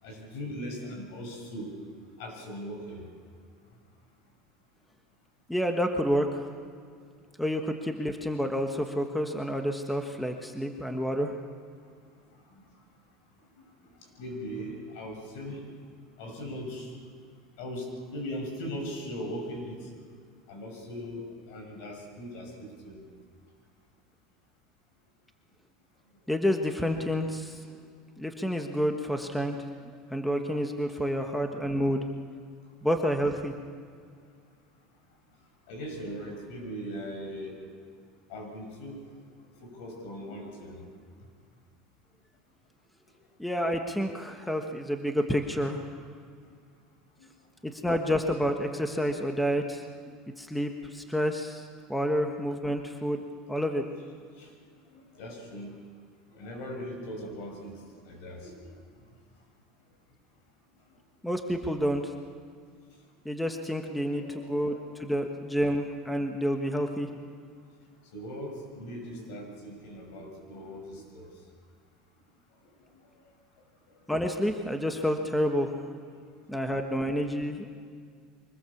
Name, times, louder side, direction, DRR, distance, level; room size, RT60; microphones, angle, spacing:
voice 1, 0.0-1.7 2.2-3.0 12.5-12.6 13.8-13.9 14.2-15.6 16.2-16.9 17.6-19.9 20.5-21.2 21.5-23.0 35.7-37.5 38.3-38.9 39.6-40.8 54.3-54.5 54.9-55.7 56.3-58.8 64.1-65.0 67.0-67.1 67.4-67.5 68.1-71.3, equal, 75° left, 2 dB, 6.8 m, -39 dB
voice 2, 5.5-6.4 7.4-11.3 26.3-27.6 28.2-29.5 29.9-32.0 32.8-33.5 43.4-45.8 47.6-49.8 50.4-53.2 53.5-53.8 61.2-62.0 63.2-67.1 74.1-75.7 76.5-77.7, equal, 5° left, 4 dB, 1.3 m, -29 dB
24.0 x 20.0 x 7.2 m, 2.1 s
supercardioid pair, 140°, 0 cm